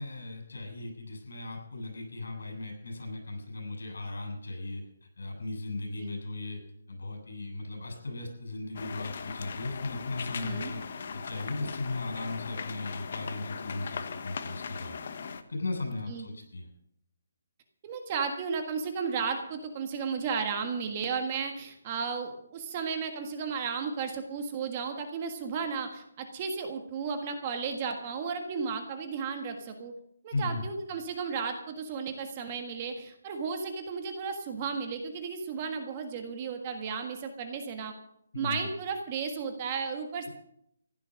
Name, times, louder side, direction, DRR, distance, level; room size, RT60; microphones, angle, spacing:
voice 1, 0.0-6.6 6.9-10.8 11.1-15.0 15.5-16.7 30.3-30.6 38.3-38.6, left 2 dB, 80° left, 4 dB, 7.5 m, -37 dB
sound 1, 8.7-15.4, left 5 dB, 40° left, 1.1 m, -39 dB
voice 2, 17.8-29.9 30.2-37.9 38.3-40.3, right 5 dB, 20° right, 6 dB, 1.5 m, -34 dB
15.5 x 11.0 x 6.5 m, 0.71 s
hypercardioid pair, 175°, 0 cm